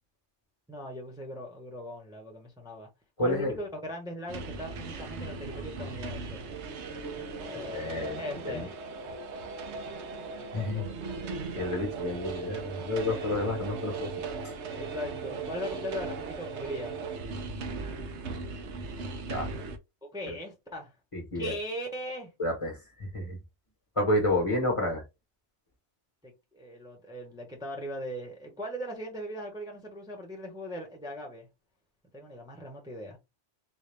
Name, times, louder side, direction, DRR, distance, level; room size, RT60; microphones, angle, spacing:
voice 1, 0.7-2.9 3.2-6.4 7.4-8.8 10.3-11.5 14.8-17.0 20.0-20.9 21.3-22.3 26.2-31.5 32.1-33.2, equal, 5° right, 0.9 m, -39 dB
voice 2, 3.2-3.6 7.5-8.2 8.4-8.7 10.5-10.8 11.6-14.1 19.3-19.5 21.1-21.5 22.4-23.4 24.0-25.0, left 1 dB, 30° left, 1.1 m, -30 dB
sound 1, 4.3-19.8, right 4 dB, 70° right, 1.0 m, -38 dB
4.2 x 2.3 x 3.3 m
omnidirectional pair, 1.2 m